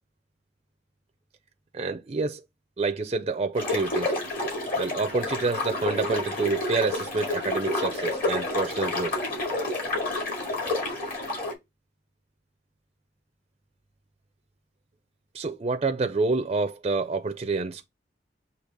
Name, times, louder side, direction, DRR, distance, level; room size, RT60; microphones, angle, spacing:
voice 1, 1.7-2.4 2.8-4.1 4.8-9.2 15.3-17.9, right 3 dB, 30° right, 0.4 m, -28 dB
sound 1, 3.6-11.5, left 2 dB, 50° left, 2.0 m, -29 dB
6.4 x 2.8 x 5.2 m
head